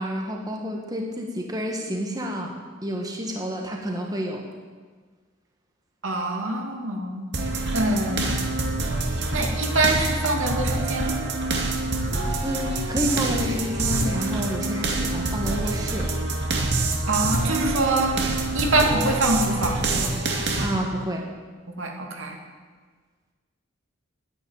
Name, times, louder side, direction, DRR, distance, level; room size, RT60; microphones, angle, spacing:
voice 1, 0.0-2.6 2.8-4.4 12.4-16.1 20.6-21.3, equal, 20° right, 1 dB, 1.5 m, -29 dB
voice 2, 6.0-7.3 7.7-8.3 9.3-11.2 17.1-18.1 18.5-20.1 21.8-22.4, right 2 dB, 75° right, 1 dB, 2.4 m, -24 dB
sound 1, 7.3-20.7, right 2 dB, 60° right, 2.2 m, -26 dB
11.5 x 10.5 x 8.9 m, 1.4 s
head